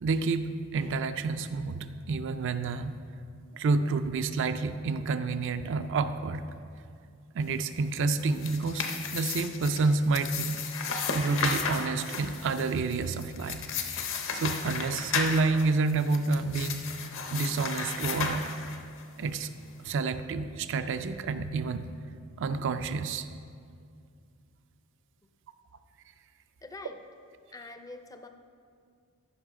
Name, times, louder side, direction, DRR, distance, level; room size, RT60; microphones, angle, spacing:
voice 1, 0.0-3.0 3.5-6.5 7.3-10.6 11.1-13.6 14.3-16.9 17.3-18.6 19.2-19.5 19.8-21.9 22.4-23.3, right 4 dB, 60° right, 10 dB, 0.4 m, -29 dB
sound 1, 8.1-19.0, left 5 dB, 60° left, 0.8 m, -34 dB
voice 2, 26.6-27.0 27.5-28.3, left 2 dB, 15° left, 7 dB, 0.4 m, -44 dB
14.0 x 5.7 x 3.7 m, 2.3 s
head